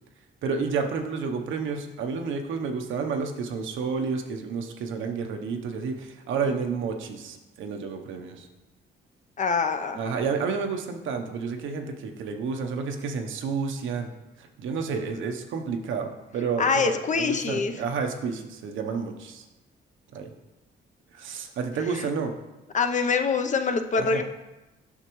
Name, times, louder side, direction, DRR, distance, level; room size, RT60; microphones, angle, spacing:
voice 1, 0.4-8.5 9.9-14.1 14.4-19.4 20.1-20.3 21.1-22.3 24.0-24.2, right 5 dB, 75° right, 5 dB, 0.8 m, -30 dB
voice 2, 9.4-10.0 16.6-17.7 22.7-24.2, left 5 dB, 40° left, 7 dB, 0.6 m, -24 dB
8.1 x 5.8 x 3.1 m, 1.0 s
cardioid pair, 90°, 20 cm